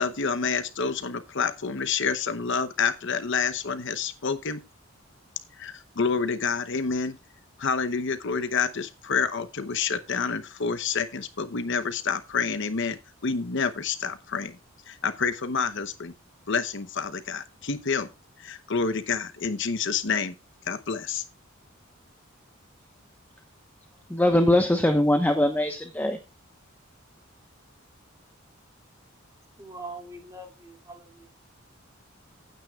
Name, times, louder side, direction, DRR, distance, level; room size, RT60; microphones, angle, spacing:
voice 1, 0.0-4.6 5.6-7.2 7.6-14.5 14.9-16.1 16.5-18.1 18.4-20.3 20.7-21.2, left 5 dB, 60° left, 0.9 m, -28 dB
voice 2, 24.1-26.2, left 1 dB, 10° left, 1.1 m, -22 dB
voice 3, 29.6-31.3, right 2 dB, 15° right, 2.6 m, -42 dB
15.5 x 9.4 x 2.4 m
head